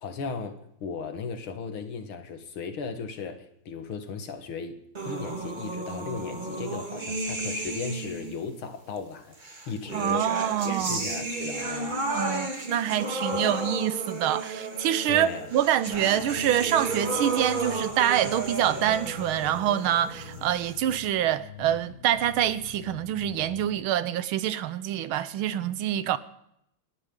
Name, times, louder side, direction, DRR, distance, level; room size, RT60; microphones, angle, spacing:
voice 1, 0.0-10.3 10.6-12.0 13.3-13.6 15.1-15.5, left 5 dB, 80° left, 2.3 m, -36 dB
sound 1, 4.9-8.4 9.4-21.0, right 2 dB, 25° right, 1.6 m, -33 dB
voice 2, 9.9-11.0 12.1-26.2, right 11 dB, 80° right, 1.6 m, -26 dB
sound 2, 15.9-23.9, left 10 dB, 60° left, 1.1 m, -46 dB
28.5 x 11.0 x 3.8 m
omnidirectional pair, 2.3 m